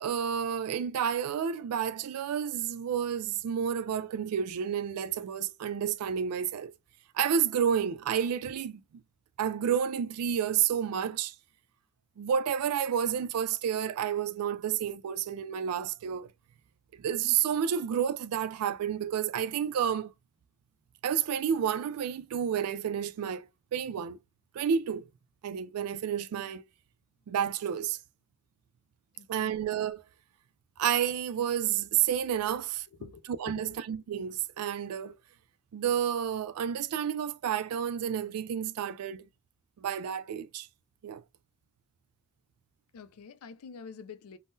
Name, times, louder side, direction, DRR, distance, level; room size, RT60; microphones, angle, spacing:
voice 1, 0.0-6.7 7.1-9.0 9.4-11.3 12.2-16.3 17.0-20.1 21.0-24.2 24.5-25.0 25.4-26.6 27.3-28.0 29.3-30.0 30.8-32.9 33.4-35.2 35.7-39.3 39.8-40.7 41.0-41.2, right 8 dB, 90° right, 0.3 m, -30 dB
voice 2, 29.1-29.6 33.0-33.8 42.9-44.4, left 5 dB, 80° left, 0.4 m, -46 dB
3.6 x 2.0 x 2.6 m
head